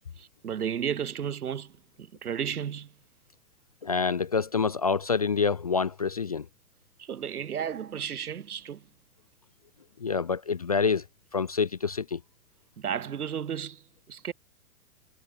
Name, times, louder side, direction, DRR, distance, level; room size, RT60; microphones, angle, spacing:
voice 1, 0.2-2.9 7.0-8.9 12.8-14.3, right 8 dB, 85° right, 8.0 m, -33 dB
voice 2, 3.8-6.5 10.0-11.0 11.3-12.2, left 5 dB, 30° left, 0.4 m, -27 dB
hypercardioid pair, 170°, 43 cm